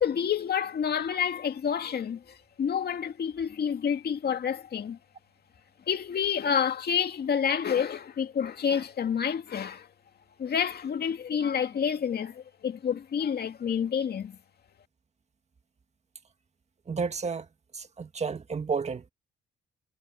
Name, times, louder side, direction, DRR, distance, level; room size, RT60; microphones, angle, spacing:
voice 1, 0.0-2.2 2.6-5.0 5.9-9.9 10.4-14.4, left 7 dB, 55° left, 2.2 m, -28 dB
voice 2, 16.9-17.5 17.7-19.1, right 5 dB, 35° right, 1.9 m, -31 dB
cardioid pair, 90°, 20 cm